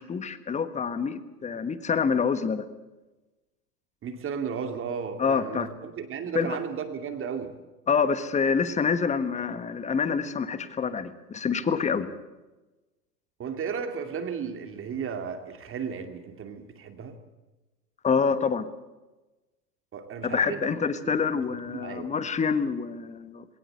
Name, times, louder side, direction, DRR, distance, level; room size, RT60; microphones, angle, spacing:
voice 1, 0.0-2.7 5.2-5.7 6.3-6.6 7.9-12.1 18.0-18.6 20.2-23.5, left 5 dB, 15° left, 12 dB, 1.4 m, -27 dB
voice 2, 4.0-7.5 13.4-17.2 19.9-21.1 21.7-22.1, right 6 dB, 25° right, 7 dB, 2.6 m, -34 dB
20.5 x 18.5 x 7.9 m, 1.1 s
hypercardioid pair, 105°, 49 cm